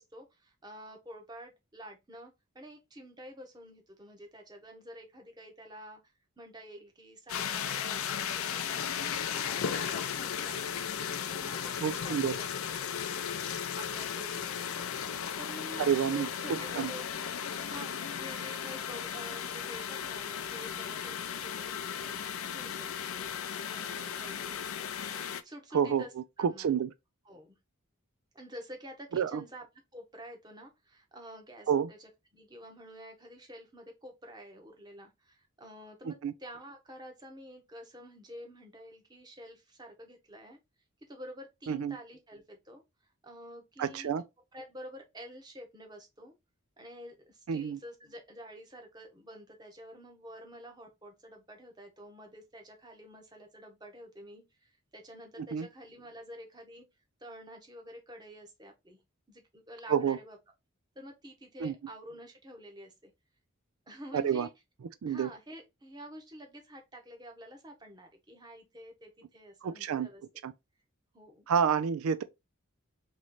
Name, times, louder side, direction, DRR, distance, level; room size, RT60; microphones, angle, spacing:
voice 1, 0.0-12.9 13.7-14.7 15.4-17.0 17.6-24.6 25.4-26.1 26.4-26.8 27.2-27.6 28.3-29.7 29.9-40.6 41.1-42.8 43.2-44.1 44.5-46.3 46.8-56.9 57.2-59.0 59.3-60.4 60.9-63.1 63.9-64.5 65.0-70.2 71.1-71.4, equal, 20° right, 1.0 m, -49 dB
sound 1, 7.3-25.4, left 8 dB, 85° left, 0.5 m, -36 dB
voice 2, 11.8-12.3 15.8-16.9 25.7-26.0 26.4-26.9 29.1-29.4 31.7-31.9 36.1-36.3 41.7-42.0 43.8-44.2 47.5-47.8 55.5-55.7 59.9-60.2 61.6-61.7 64.1-64.5 65.0-65.3 69.6-70.1 70.4-70.5 71.5-72.2, right 7 dB, 85° right, 0.4 m, -29 dB
3.1 x 3.1 x 3.9 m
head